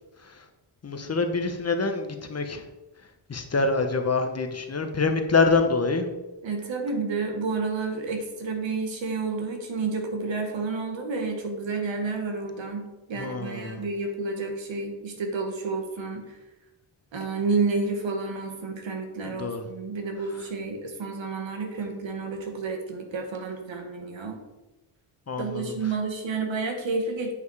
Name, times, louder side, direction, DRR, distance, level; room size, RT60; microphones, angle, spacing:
voice 1, 0.8-2.6 3.3-6.1 13.2-13.8 19.2-19.6 25.3-25.7, left 4 dB, 35° left, 6 dB, 1.0 m, -26 dB
voice 2, 6.4-16.4 17.1-24.4 25.4-27.3, right 4 dB, 80° right, 4 dB, 1.6 m, -30 dB
8.6 x 5.3 x 4.8 m, 1.1 s
wide cardioid pair, 105°, 45 cm